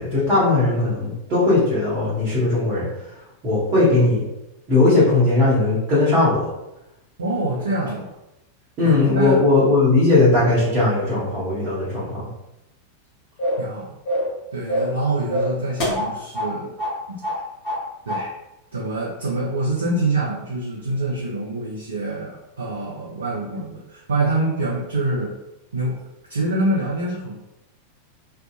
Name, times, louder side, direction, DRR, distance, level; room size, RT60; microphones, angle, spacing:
voice 1, 0.0-2.9 3.4-4.2 4.7-6.5 8.8-12.3, left 2 dB, 35° right, -10 dB, 1.1 m, -18 dB
voice 2, 7.2-8.1 8.8-9.4 9.8-10.2 13.6-13.9 14.5-16.7 17.1-17.2 18.1-18.3 18.7-25.3 25.7-26.0 26.3-27.3, right 2 dB, 70° right, -5 dB, 0.5 m, -25 dB
sound 1, 13.4-13.7 14.0-14.4 14.7-15.0 15.3-16.5 16.8-17.0 17.2-17.8 18.1-18.2, equal, 40° left, 1.1 m, -24 dB
2.7 x 2.3 x 2.3 m, 0.90 s
figure-of-eight pair, 90°, 0 cm